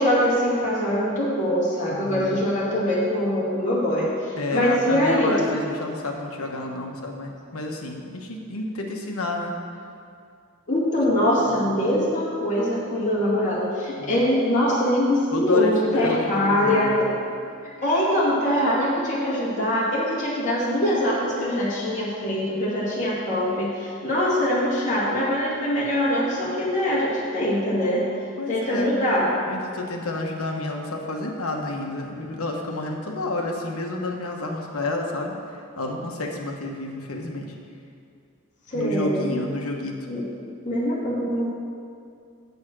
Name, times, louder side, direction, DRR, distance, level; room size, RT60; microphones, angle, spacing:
voice 1, 0.0-5.4 10.7-17.1 17.8-28.1 28.5-29.3 38.7-39.3 40.1-40.2 40.7-41.5, left 1 dB, 35° left, -8 dB, 2.4 m, -23 dB
voice 2, 1.9-2.4 4.3-9.5 11.5-11.6 14.0-14.2 15.3-17.0 28.4-29.0 29.4-37.5 38.7-40.0, left 2 dB, 70° left, 1 dB, 1.3 m, -30 dB
8.4 x 7.9 x 6.2 m, 2.4 s
head